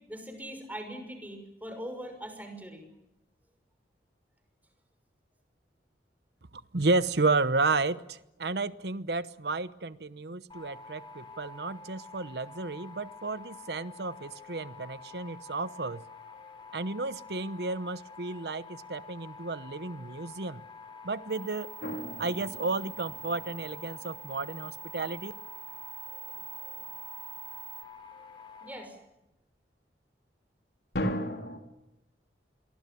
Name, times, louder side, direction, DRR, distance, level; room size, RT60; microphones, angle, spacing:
voice 1, 0.1-2.9 28.6-28.9, equal, 10° right, 6 dB, 6.2 m, -41 dB
voice 2, 6.5-16.0 16.7-20.6 21.0-21.7 22.2-25.3, right 3 dB, 65° right, 15 dB, 1.0 m, -32 dB
sound 1, 10.5-28.8, left 5 dB, 30° left, 5.7 m, -48 dB
sound 2, 21.3-27.8, right 4 dB, 35° right, 2.2 m, -45 dB
sound 3, 21.8-23.9 30.9-31.6, equal, 65° left, 3.5 m, -35 dB
28.0 x 23.0 x 7.1 m, 0.91 s
head